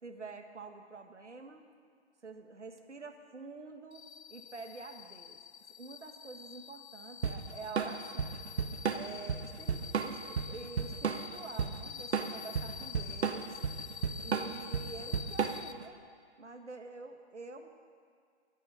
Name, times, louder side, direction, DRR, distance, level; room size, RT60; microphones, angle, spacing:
voice 1, 0.0-1.7 2.2-4.0 4.3-5.4 5.8-8.4 8.9-13.6 14.2-16.0 16.4-17.7, right 4 dB, 85° right, 5 dB, 1.7 m, -47 dB
sound 1, 3.9-15.7, left 7 dB, 70° left, 0.8 m, -47 dB
Drum kit / Drum, 7.2-15.8, right 6 dB, 65° right, 1.3 m, -33 dB
21.0 x 10.5 x 5.7 m, 2.1 s
figure-of-eight pair, 140°, 34 cm